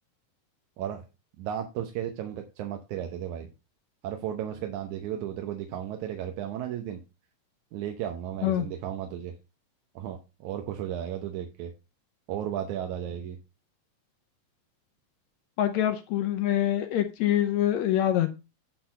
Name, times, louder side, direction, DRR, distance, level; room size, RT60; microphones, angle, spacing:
voice 1, 1.4-3.5 4.0-7.0 7.7-9.3 10.0-11.7 12.3-13.4, right 10 dB, 70° right, 4 dB, 2.1 m, -34 dB
voice 2, 15.6-18.3, left 12 dB, 75° left, 8 dB, 1.8 m, -25 dB
10.5 x 4.1 x 5.4 m, 0.28 s
omnidirectional pair, 3.8 m